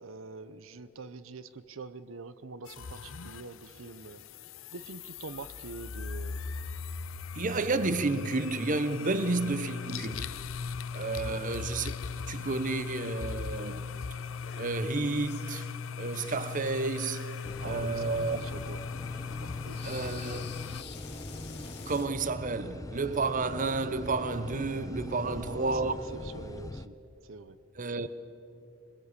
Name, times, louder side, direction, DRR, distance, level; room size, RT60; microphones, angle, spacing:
voice 1, 0.0-4.2 4.7-6.4 11.1-11.5 17.6-18.8 19.4-20.1 25.1-27.0 27.2-27.6, right 4 dB, 70° right, 0.7 m, -45 dB
sound 1, 2.7-20.8, left 5 dB, 70° left, 0.7 m, -39 dB
voice 2, 7.3-10.4 10.9-11.9 12.3-13.9 14.6-15.7 16.0-17.3 17.6-18.4 19.8-20.4 21.7-25.9 27.8-28.1, right 3 dB, 40° right, 0.8 m, -31 dB
sound 2, 13.5-13.6 14.4-14.7 15.0-15.9 16.9-18.2 18.5-18.7 19.6-22.1, left 6 dB, 55° left, 2.4 m, -49 dB
sound 3, 17.4-26.9, left 1 dB, 15° left, 0.6 m, -42 dB
24.0 x 21.5 x 8.3 m
head